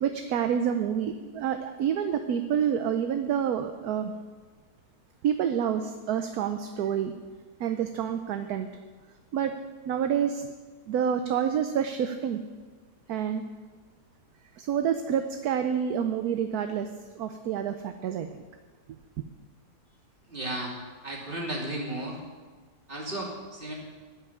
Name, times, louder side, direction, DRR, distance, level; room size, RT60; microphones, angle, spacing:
voice 1, 0.0-4.1 5.2-7.1 7.6-8.7 9.3-9.5 9.9-10.5 10.9-12.4 13.1-13.4 14.6-16.9 17.2-18.4 18.9-19.0, right 8 dB, 70° right, 7 dB, 1.1 m, -28 dB
voice 2, 20.3-20.7 21.0-22.2 22.9-23.7, right 1 dB, 30° right, -3 dB, 2.9 m, -34 dB
12.5 x 5.7 x 9.4 m, 1.4 s
omnidirectional pair, 1.8 m